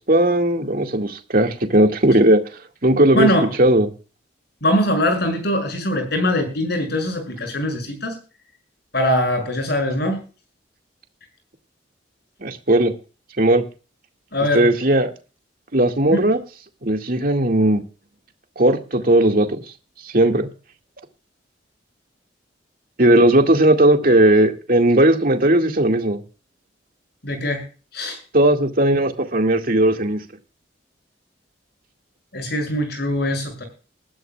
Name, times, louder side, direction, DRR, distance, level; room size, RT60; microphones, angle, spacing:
voice 1, 0.1-2.4 2.8-3.3 3.6-3.9 12.4-12.9 13.4-13.6 14.5-15.1 15.7-16.4 16.8-17.8 18.6-19.6 20.1-20.5 23.0-26.2 28.3-30.2, right 1 dB, 50° right, 2.1 m, -16 dB
voice 2, 3.1-3.5 4.6-8.1 8.9-10.2 14.3-14.6 16.1-16.2 27.2-27.6 27.9-28.2 32.3-33.6, left 1 dB, 60° left, 6.7 m, -22 dB
21.0 x 12.5 x 2.4 m
head